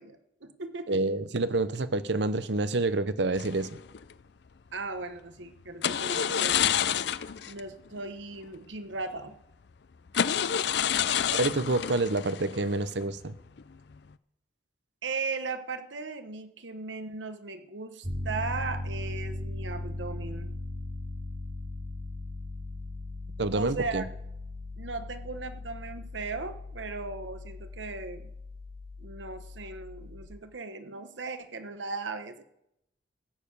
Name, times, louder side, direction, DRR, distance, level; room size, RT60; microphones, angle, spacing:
voice 1, 0.0-1.0 4.7-6.7 7.5-9.3 15.0-20.5 23.5-24.1 24.8-28.3 29.0-32.4, right 3 dB, 90° right, 9 dB, 1.1 m, -37 dB
voice 2, 0.9-3.7 11.3-13.3 23.4-24.0, right 2 dB, 70° right, 14 dB, 0.8 m, -28 dB
sound 1, 3.4-4.1 5.8-7.6 7.9-8.0 8.4-8.6 9.3-9.4 10.1-13.2 13.6-13.9, left 9 dB, 65° left, 0.5 m, -29 dB
Piano, 18.0-30.2, left 1 dB, 30° right, 3.4 m, -38 dB
15.5 x 6.7 x 8.5 m, 0.81 s
head